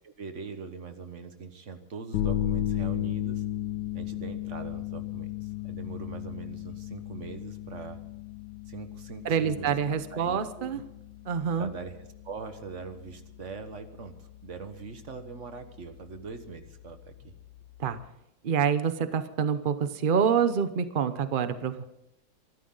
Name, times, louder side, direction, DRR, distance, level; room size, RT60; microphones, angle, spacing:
voice 1, 0.0-3.4 3.9-8.0 8.7-9.8 10.1-10.8 11.6-17.3, right 5 dB, 40° right, 8 dB, 1.5 m, -42 dB
sound 1, 2.1-18.1, left 13 dB, 80° left, 1.8 m, -36 dB
voice 2, 9.2-10.8 11.3-11.7 17.8-18.0 18.4-21.8, right 7 dB, 75° right, 11 dB, 0.4 m, -26 dB
24.5 x 12.5 x 3.9 m, 0.81 s
omnidirectional pair, 2.1 m